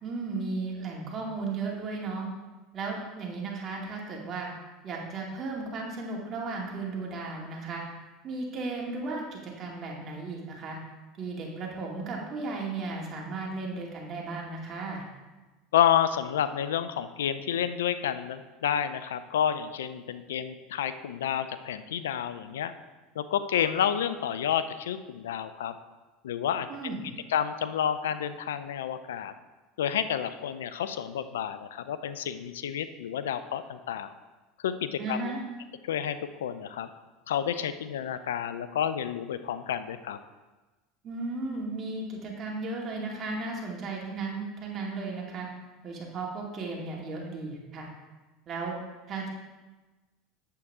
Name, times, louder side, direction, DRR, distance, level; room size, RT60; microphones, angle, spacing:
voice 1, 0.0-2.3 2.7-4.5 4.8-7.8 8.2-10.8 11.2-15.0 26.7-27.0 35.0-35.4 41.0-45.5 45.8-47.9 48.5-48.8 49.1-49.3, right 3 dB, 40° right, -2 dB, 2.4 m, -35 dB
voice 2, 15.7-22.7 23.2-25.7 26.2-26.9 27.3-29.3 29.8-34.1 34.6-35.3 35.9-36.9 37.3-40.2, left 9 dB, 85° left, 12 dB, 0.4 m, -30 dB
8.5 x 7.9 x 3.6 m, 1.2 s
hypercardioid pair, 90°, 0 cm